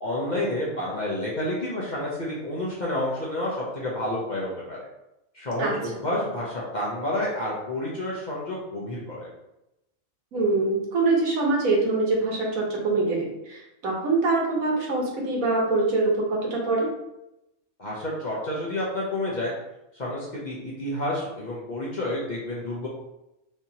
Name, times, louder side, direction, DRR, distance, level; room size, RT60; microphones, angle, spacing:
voice 1, 0.0-4.8 5.3-9.3 17.8-19.5 19.9-22.9, left 1 dB, 40° left, -5 dB, 0.7 m, -29 dB
voice 2, 10.3-16.9, right 3 dB, 75° right, -2 dB, 1.4 m, -24 dB
4.7 x 2.8 x 2.8 m, 0.90 s
omnidirectional pair, 1.5 m